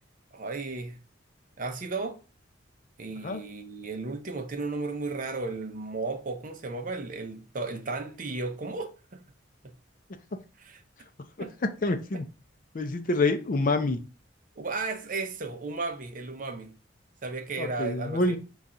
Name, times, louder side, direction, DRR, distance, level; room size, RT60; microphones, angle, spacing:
voice 1, 0.3-1.0 1.6-2.2 3.0-9.2 9.6-9.7 10.6-10.8 11.4-11.5 14.6-16.8 17.2-18.4, right 3 dB, 40° right, 0.6 m, -34 dB
voice 2, 11.8-12.2 12.7-14.0 17.6-18.4, left 2 dB, 45° left, 0.5 m, -26 dB
5.5 x 2.4 x 3.7 m
head